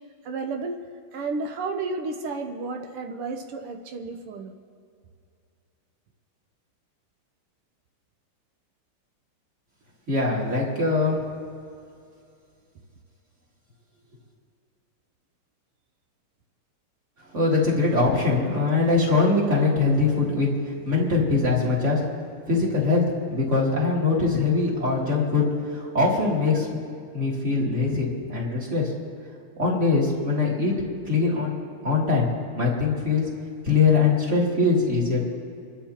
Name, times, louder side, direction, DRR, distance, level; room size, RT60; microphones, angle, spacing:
voice 1, 0.2-0.8 1.1-4.5, right 3 dB, 90° right, 4 dB, 1.9 m, -32 dB
voice 2, 10.1-11.2 17.3-20.5 20.8-22.0 22.5-23.0 23.3-25.5 25.7-26.7 27.1-28.9 29.6-30.7 31.1-31.5 31.8-32.2 32.5-33.2 33.6-35.3, left 3 dB, 30° right, -5 dB, 3.3 m, -22 dB
29.5 x 12.5 x 3.0 m, 2.4 s
omnidirectional pair, 2.4 m